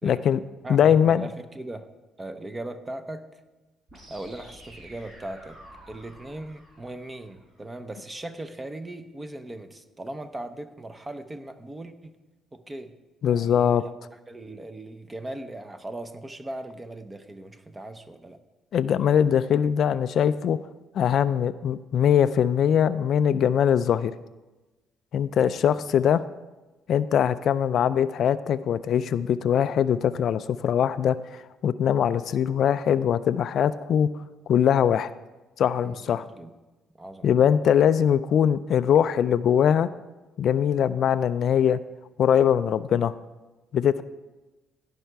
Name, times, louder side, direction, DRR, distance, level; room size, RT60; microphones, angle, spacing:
voice 1, 0.0-0.4 0.7-1.3 13.2-13.8 18.7-20.6 20.9-24.1 25.1-26.2 26.9-31.2 31.6-34.1 34.5-35.1 35.6-36.2 37.2-39.9 40.4-41.8 42.2-43.1 43.7-44.0, left 9 dB, 60° left, 14 dB, 0.3 m, -22 dB
voice 2, 0.6-1.9 2.2-3.3 4.1-5.6 5.9-12.2 12.5-13.0 13.3-18.4 25.4-25.7 35.8-36.5 37.0-37.3, right 1 dB, 15° right, 9 dB, 0.7 m, -39 dB
sound 1, 3.9-7.9, right 1 dB, 40° right, 4.1 m, -50 dB
16.0 x 5.5 x 4.6 m, 1.2 s
cardioid pair, 105°, 0 cm